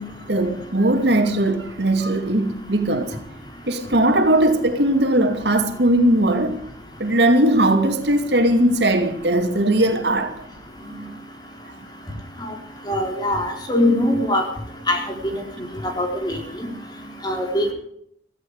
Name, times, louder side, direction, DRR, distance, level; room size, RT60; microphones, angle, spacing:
voice 1, 0.0-3.1 3.7-6.6 7.0-10.3, right 1 dB, 75° right, 2.5 m, -19 dB
voice 2, 12.9-14.4 14.9-15.4 16.0-16.4 17.2-17.7, left 1 dB, 25° left, 4.2 m, -22 dB
16.5 x 14.5 x 5.0 m
head